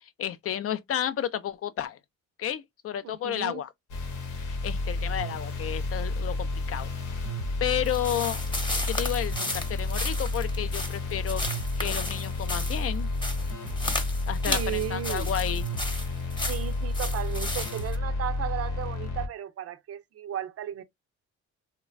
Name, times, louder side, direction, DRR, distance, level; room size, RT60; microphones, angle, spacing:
voice 1, 0.0-2.0 2.4-3.7 4.3-6.9 7.6-8.4 8.7-11.4 11.8-13.1 14.3-15.6, left 10 dB, 50° left, 0.4 m, -32 dB
voice 2, 3.0-3.6 14.5-15.3 16.5-20.8, right 11 dB, 50° right, 0.5 m, -35 dB
sound 1, 3.9-19.3, left 2 dB, 90° left, 0.9 m, -31 dB
sound 2, 7.9-18.0, left 2 dB, 15° left, 0.9 m, -34 dB
3.0 x 2.2 x 2.4 m
cardioid pair, 90°, 30 cm